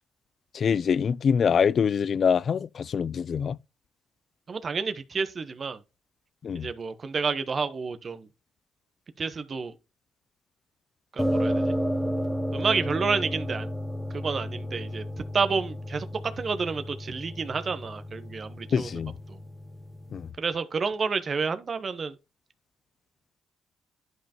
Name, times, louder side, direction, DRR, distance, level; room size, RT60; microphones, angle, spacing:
voice 1, 0.5-3.6 6.4-6.7 18.7-19.1 20.1-20.3, left 6 dB, 50° left, 0.4 m, -24 dB
voice 2, 4.5-5.8 6.5-8.3 9.2-9.7 11.1-11.7 12.5-13.7 14.1-15.0 15.3-16.1 16.4-18.9 19.3-19.4 20.4-22.2, right 5 dB, 40° right, 0.9 m, -29 dB
sound 1, 11.2-20.3, equal, 5° left, 1.1 m, -32 dB
11.0 x 5.3 x 2.9 m
cardioid pair, 90°, 0 cm